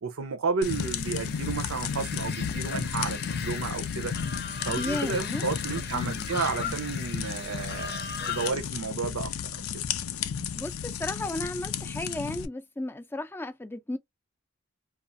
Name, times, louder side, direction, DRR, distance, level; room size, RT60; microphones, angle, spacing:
voice 1, 0.0-4.1 4.6-9.8, right 5 dB, 85° right, 0.6 m, -32 dB
sound 1, 0.6-12.5, left 7 dB, 90° left, 0.4 m, -33 dB
sound 2, 0.6-8.5, left 6 dB, 50° left, 0.6 m, -38 dB
voice 2, 4.8-5.4 5.9-6.3 6.6-6.8 10.5-14.0, left 1 dB, 10° left, 0.4 m, -34 dB
2.4 x 2.3 x 2.5 m
head